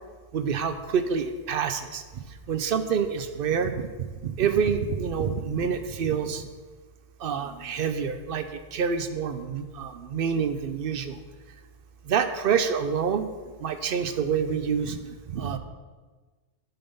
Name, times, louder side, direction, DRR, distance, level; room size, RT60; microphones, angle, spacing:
voice 1, 0.3-2.0 2.5-6.5 7.2-11.2 12.1-13.2 13.6-15.6, right 6 dB, 60° right, 9 dB, 0.6 m, -27 dB
10.5 x 3.9 x 5.3 m, 1.3 s
omnidirectional pair, 1.3 m